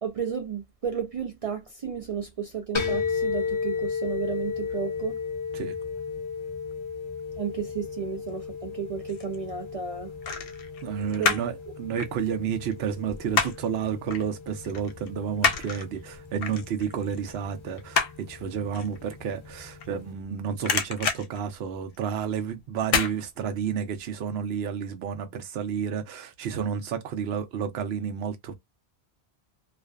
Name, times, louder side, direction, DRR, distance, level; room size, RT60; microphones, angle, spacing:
voice 1, 0.0-5.2 7.4-10.1 11.2-11.3, right 7 dB, 60° right, 0.3 m, -33 dB
sound 1, 2.7-20.1, left 5 dB, 35° left, 0.5 m, -35 dB
sound 2, 8.7-9.4 10.2-11.6 11.9-13.8 14.1-14.3 14.6-20.3 20.6-22.2 22.8-23.2 23.6-23.7, left 5 dB, 70° left, 0.8 m, -29 dB
voice 2, 10.8-28.5, right 7 dB, 75° right, 0.9 m, -31 dB
2.4 x 2.3 x 2.3 m
omnidirectional pair, 1.1 m